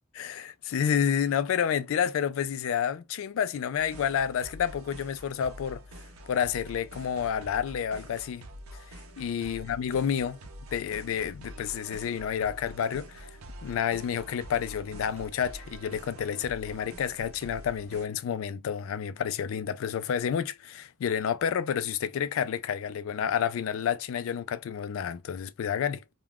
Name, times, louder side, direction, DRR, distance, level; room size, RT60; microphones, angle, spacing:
voice 1, 0.1-5.8 6.3-8.4 8.9-10.4 10.7-13.3 13.6-26.0, left 8 dB, 65° left, 0.3 m, -30 dB
sound 1, 3.8-18.1, right 1 dB, 85° right, 0.6 m, -46 dB
2.3 x 2.2 x 3.4 m
head